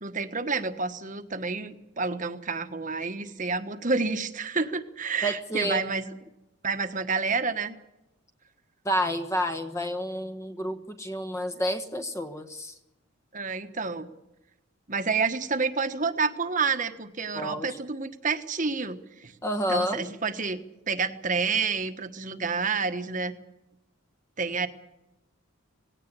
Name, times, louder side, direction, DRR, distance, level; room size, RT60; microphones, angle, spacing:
voice 1, 0.0-6.1 6.6-7.7 13.3-14.1 14.9-19.3 19.7-20.6 20.9-23.3 24.4-24.7, right 4 dB, 35° right, 9 dB, 1.4 m, -29 dB
voice 2, 5.2-5.8 8.8-12.8 17.3-17.8 19.4-20.1, equal, 15° left, 8 dB, 1.2 m, -30 dB
20.0 x 17.5 x 9.7 m, 0.91 s
head